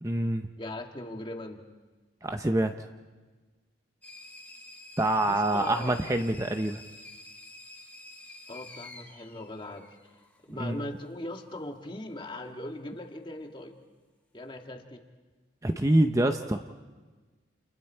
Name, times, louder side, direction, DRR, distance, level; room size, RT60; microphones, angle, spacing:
voice 1, 0.0-0.5 2.2-2.7 5.0-6.8 10.6-10.8 15.6-16.6, right 1 dB, 15° right, 6 dB, 0.6 m, -26 dB
voice 2, 0.6-1.6 5.2-5.9 8.5-10.1 10.5-13.8 14.3-15.0, left 1 dB, 25° left, 4 dB, 1.7 m, -40 dB
sound 1, 4.0-10.4, left 2 dB, 10° left, 1.7 m, -48 dB
29.5 x 29.5 x 4.5 m, 1.3 s
head